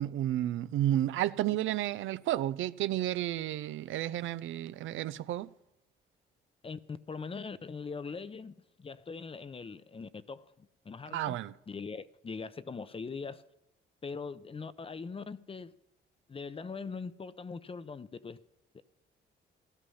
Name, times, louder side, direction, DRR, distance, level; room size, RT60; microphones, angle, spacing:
voice 1, 0.0-5.5 11.1-11.5, right 13 dB, 80° right, 0.6 m, -31 dB
voice 2, 6.6-11.4 11.7-13.5 14.0-15.7 16.3-18.4 18.7-18.8, left 4 dB, 30° left, 0.7 m, -41 dB
15.5 x 12.5 x 5.6 m
cardioid pair, 90°, 20 cm